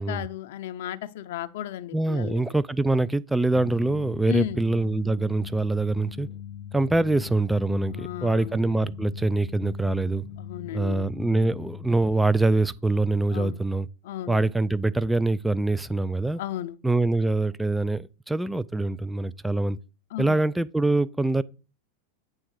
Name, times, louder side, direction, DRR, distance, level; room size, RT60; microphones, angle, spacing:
voice 1, 0.0-2.4 4.3-4.6 7.9-8.6 10.4-11.1 13.3-13.6 14.0-14.4 16.4-16.8 20.1-20.4, left 12 dB, 70° left, 0.5 m, -34 dB
voice 2, 1.9-6.3 6.7-10.3 10.7-13.9 14.3-16.4 16.8-19.8 20.2-21.4, right 2 dB, 5° right, 0.4 m, -24 dB
sound 1, 3.5-11.9, left 9 dB, 30° left, 0.7 m, -40 dB
8.9 x 3.6 x 6.4 m
hypercardioid pair, 110°, 0 cm